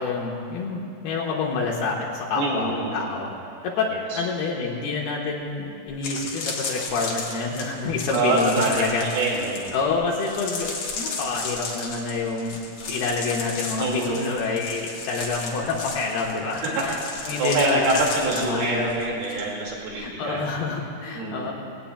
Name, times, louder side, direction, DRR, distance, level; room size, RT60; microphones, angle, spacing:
voice 1, 0.0-3.3 3.6-9.4 9.7-12.6 12.9-17.0 17.2-18.0 18.3-18.9 19.4-19.5 20.0-21.5, left 4 dB, 80° left, -3 dB, 3.1 m, -27 dB
voice 2, 2.3-3.1 3.9-4.2 8.1-9.7 13.8-14.3 16.8-16.9 17.1-20.4 21.1-21.5, right 2 dB, 80° right, -2 dB, 4.1 m, -25 dB
sound 1, 5.4-5.5 5.9-19.4 19.7-20.0, left 4 dB, 55° left, 2.5 m, -34 dB
21.0 x 17.5 x 2.2 m, 2.5 s
omnidirectional pair, 4.5 m